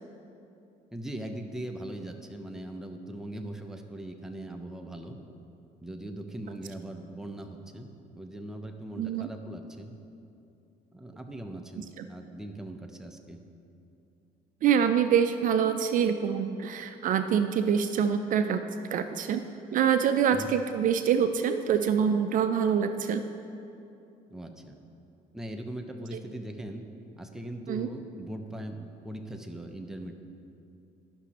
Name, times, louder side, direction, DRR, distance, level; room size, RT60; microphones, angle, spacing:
voice 1, 0.9-5.2 5.8-7.9 8.2-9.9 10.9-13.4 20.3-20.5 24.3-24.8 25.3-26.8 27.2-30.1, right 1 dB, 5° right, 4 dB, 0.5 m, -40 dB
voice 2, 9.0-9.3 12.0-12.1 14.6-18.6 18.9-19.4 19.7-23.3 26.1-26.2 27.7-27.9, right 7 dB, 55° right, 9 dB, 0.4 m, -25 dB
11.5 x 5.9 x 2.9 m, 2.7 s
cardioid pair, 110°, 17 cm